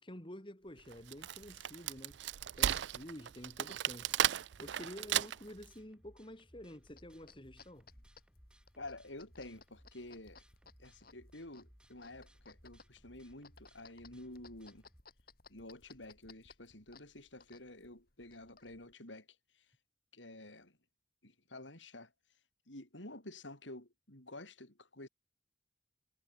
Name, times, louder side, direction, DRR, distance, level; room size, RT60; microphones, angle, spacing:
voice 1, 0.0-2.2 2.6-4.1 4.6-7.9, equal, 25° left, 3.1 m, -50 dB
Wood, 0.9-5.6, right 11 dB, 70° right, 0.4 m, -35 dB
sound 1, 4.4-15.0, equal, 5° right, 3.0 m, -64 dB
sound 2, 6.8-18.9, left 4 dB, 50° left, 4.0 m, -62 dB
voice 2, 8.8-10.4 10.8-14.8 15.5-19.3 19.5-19.7 20.1-20.8 21.2-22.1 22.7-25.1, left 2 dB, 80° left, 6.9 m, -50 dB
head